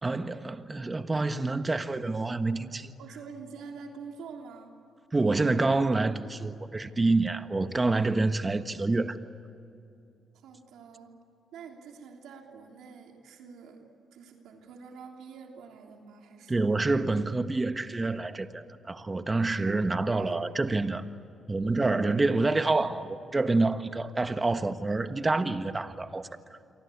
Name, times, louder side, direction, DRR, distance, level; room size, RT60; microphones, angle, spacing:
voice 1, 0.0-2.9 5.1-9.2 16.5-21.0 21.5-26.3, right 3 dB, 25° right, 1.4 m, -27 dB
voice 2, 3.0-4.7 10.3-11.1 11.5-13.8 14.1-16.7 19.7-19.9 20.1-20.3, right 5 dB, 90° right, 3.1 m, -46 dB
28.5 x 24.0 x 8.6 m
cardioid pair, 85°, 0 cm